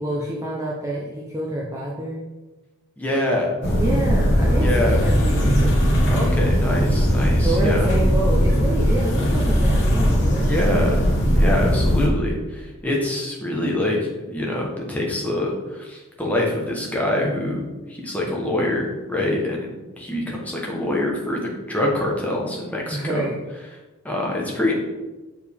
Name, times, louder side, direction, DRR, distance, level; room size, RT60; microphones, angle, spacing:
voice 1, 0.0-2.2 3.8-6.3 7.4-11.1 22.9-23.4, right 1 dB, 15° right, -4 dB, 0.7 m, -28 dB
voice 2, 3.0-3.7 4.6-5.0 6.1-7.9 10.4-11.0 11.3-21.4 21.7-23.3 24.0-24.8, left 1 dB, 5° left, -2 dB, 1.1 m, -25 dB
sound 1, 3.6-12.1, equal, 50° left, 1.4 m, -19 dB
6.7 x 4.7 x 3.5 m, 1.1 s
head